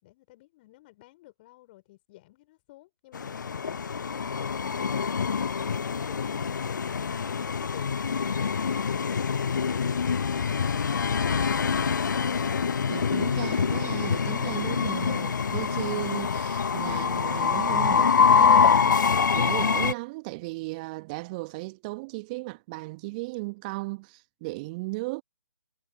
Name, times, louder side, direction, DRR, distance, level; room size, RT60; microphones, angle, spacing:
voice 1, 0.0-5.2, left 18 dB, 25° left, 5.3 m, -54 dB
Train, 3.1-19.9, left 6 dB, 50° left, 0.8 m, -25 dB
voice 2, 12.9-19.0 19.3-25.2, right 25 dB, 20° right, 1.5 m, -36 dB
figure-of-eight pair, 140°, 12 cm